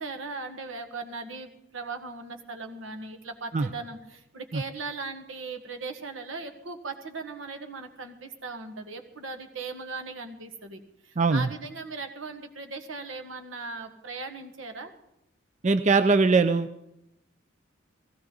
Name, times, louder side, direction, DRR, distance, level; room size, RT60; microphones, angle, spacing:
voice 1, 0.0-14.9, right 3 dB, 85° right, 6 dB, 1.7 m, -38 dB
voice 2, 11.2-11.5 15.6-16.7, right 4 dB, 40° right, 10 dB, 0.5 m, -21 dB
17.0 x 16.5 x 3.9 m, 0.81 s
head